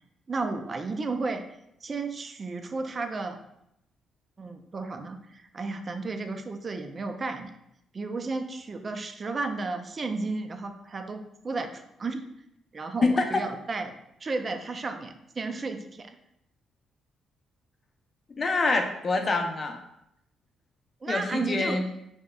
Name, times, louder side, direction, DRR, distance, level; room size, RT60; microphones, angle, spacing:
voice 1, 0.3-1.4 1.8-3.4 4.4-7.5 7.9-12.3 12.7-13.9 14.2-16.2 21.0-21.8, right 3 dB, 35° right, 7 dB, 0.4 m, -33 dB
voice 2, 18.4-19.8 21.1-21.9, left 3 dB, 40° left, 4 dB, 0.6 m, -25 dB
5.5 x 2.9 x 2.3 m, 0.81 s
cardioid pair, 90°, 0 cm